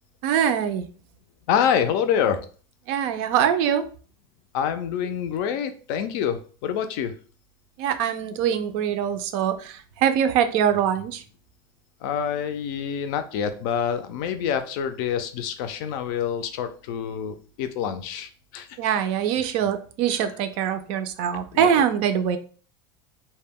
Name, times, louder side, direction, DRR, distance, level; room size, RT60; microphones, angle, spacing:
voice 1, 0.2-0.9 2.9-3.8 7.8-11.2 18.8-22.4, right 9 dB, 55° right, 9 dB, 0.4 m, -23 dB
voice 2, 1.5-2.5 4.5-7.1 12.0-18.7 21.5-21.8, left 8 dB, 60° left, 9 dB, 0.4 m, -26 dB
2.2 x 2.1 x 3.5 m, 0.39 s
supercardioid pair, 140°, 13 cm